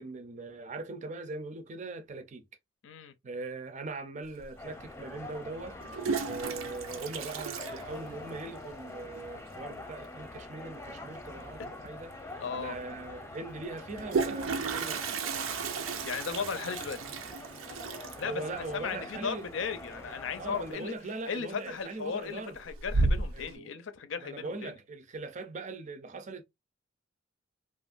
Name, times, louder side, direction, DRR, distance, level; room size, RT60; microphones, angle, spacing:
voice 1, 0.0-2.5 3.2-12.2 12.5-15.2 18.1-19.5 20.4-22.6 23.3-23.7 24.2-26.4, right 3 dB, 35° right, 0.5 m, -41 dB
voice 2, 2.8-3.1 12.4-12.8 16.0-17.0 18.2-20.9 21.3-24.7, left 6 dB, 65° left, 0.5 m, -36 dB
Toilet flush, 4.4-4.5 5.7-8.5 8.8-8.9 9.2-9.3 9.5-9.9 11.6-11.7 12.1-12.2 13.7-20.4 20.7-21.2 21.6-22.1 22.5-23.5, right 4 dB, 90° right, 0.6 m, -33 dB
sound 1, 4.6-20.7, left 2 dB, 15° left, 0.7 m, -45 dB
3.0 x 2.4 x 2.4 m
head